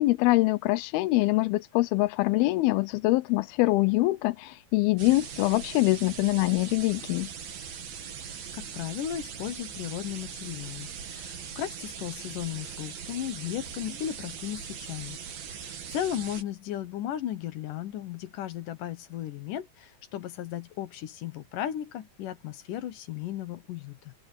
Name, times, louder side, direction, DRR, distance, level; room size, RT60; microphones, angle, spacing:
voice 1, 0.0-7.3, left 20 dB, 85° left, 2.6 m, -24 dB
sound 1, 5.0-16.4, right 7 dB, 70° right, 4.5 m, -40 dB
voice 2, 8.3-15.2 15.4-24.1, left 11 dB, 70° left, 2.5 m, -35 dB
omnidirectional pair, 4.4 m